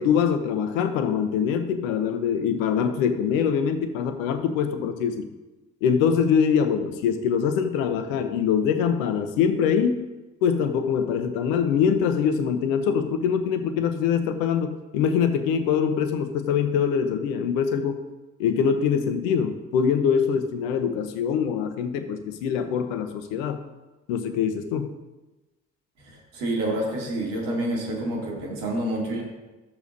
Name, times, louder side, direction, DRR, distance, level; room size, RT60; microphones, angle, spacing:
voice 1, 0.0-5.3 5.8-10.1 10.4-18.0 18.4-23.6 24.1-24.9, left 7 dB, 75° left, 9 dB, 1.0 m, -23 dB
voice 2, 26.0-29.2, right 1 dB, 70° right, -2 dB, 2.7 m, -28 dB
13.0 x 7.0 x 2.7 m, 1.1 s
hypercardioid pair, 50°, 41 cm